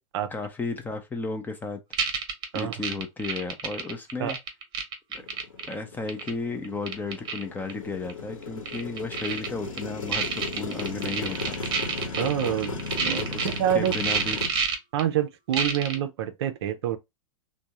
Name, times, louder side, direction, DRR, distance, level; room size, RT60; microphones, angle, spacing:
voice 1, 0.3-1.8 2.5-4.4 5.7-11.5 13.1-13.5 13.7-14.4, left 3 dB, 10° left, 0.5 m, -33 dB
sound 1, 1.9-5.7 6.1-6.3 6.6-7.4 7.7-7.8 8.1-8.2 8.7-9.5 9.8-9.9 10.1-13.6 13.9-15.0 15.5-16.0, right 6 dB, 25° right, 0.9 m, -28 dB
Motorcycle, 5.2-14.5, left 3 dB, 70° left, 1.1 m, -36 dB
voice 2, 12.2-13.9 14.9-17.0, right 10 dB, 50° right, 0.6 m, -27 dB
3.5 x 2.2 x 2.8 m
figure-of-eight pair, 95°, 18 cm